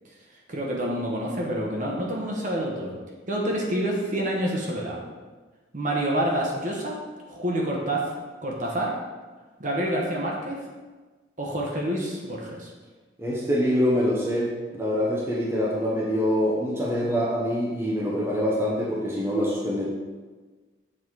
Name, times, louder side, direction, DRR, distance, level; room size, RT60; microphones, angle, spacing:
voice 1, 0.5-2.9 3.3-5.0 5.7-7.0 7.3-8.1 8.4-8.9 9.6-10.6 11.4-12.7, right 1 dB, 40° right, -2 dB, 1.2 m, -27 dB
voice 2, 13.2-19.9, equal, 15° right, -5 dB, 0.9 m, -25 dB
7.5 x 4.1 x 4.7 m, 1.3 s
head